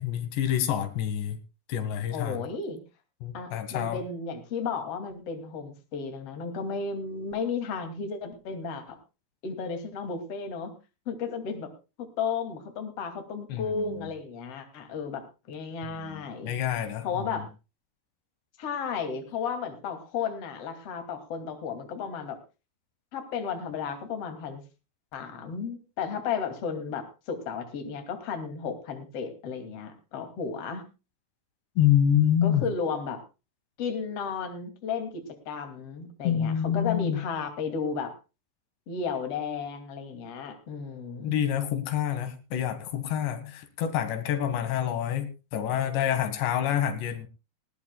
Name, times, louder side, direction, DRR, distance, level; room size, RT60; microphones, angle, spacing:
voice 1, 0.0-1.4 1.7-2.4 3.2-4.0 13.5-13.9 16.0-17.5 31.8-32.6 36.2-37.2 41.2-47.3, left 10 dB, 85° left, 9 dB, 4.0 m, -27 dB
voice 2, 2.1-2.8 3.3-9.0 9.4-10.7 11.1-11.7 12.2-16.5 17.0-17.5 18.6-22.4 23.1-24.6 25.1-30.8 32.4-33.2 33.8-38.1 38.9-41.4, left 5 dB, 40° left, 6 dB, 3.1 m, -33 dB
19.5 x 16.5 x 2.3 m, 0.30 s
omnidirectional pair, 4.9 m